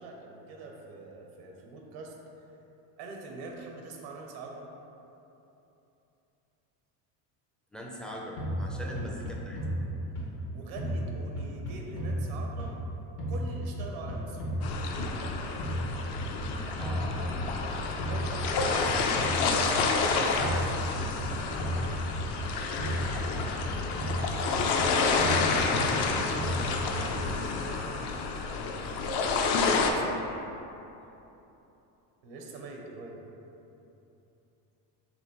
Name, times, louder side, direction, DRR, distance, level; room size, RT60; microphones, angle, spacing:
voice 1, 0.0-2.2 3.0-4.7 8.8-9.0 10.5-12.8 13.3-14.7 18.0-19.0 19.8-20.3 22.7-28.2 28.8-30.3 32.2-33.3, right 3 dB, 75° right, 0 dB, 0.9 m, -45 dB
voice 2, 7.7-9.6 16.8-17.5, equal, ahead, -2 dB, 0.4 m, -41 dB
sound 1, 8.4-10.5 10.8-12.9 13.2-15.3 15.6-17.7 18.0-20.0 20.4-22.5 22.8-24.9 25.2-27.3, equal, 70° left, 1.2 m, -34 dB
sound 2, 14.6-29.9, left 4 dB, 55° left, 0.6 m, -29 dB
5.0 x 3.0 x 3.0 m, 3.0 s
supercardioid pair, 85°, 49 cm